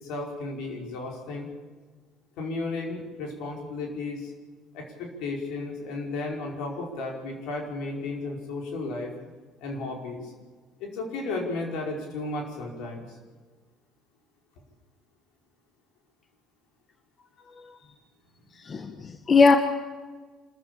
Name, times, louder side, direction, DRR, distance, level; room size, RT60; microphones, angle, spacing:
voice 1, 0.0-1.5 2.4-4.3 4.7-9.1 9.6-10.3 10.8-13.0, left 3 dB, 75° left, 1 dB, 5.1 m, -34 dB
voice 2, 18.5-19.6, left 4 dB, 40° left, 7 dB, 1.5 m, -21 dB
25.5 x 14.0 x 8.8 m, 1.4 s
hypercardioid pair, 65°, 0 cm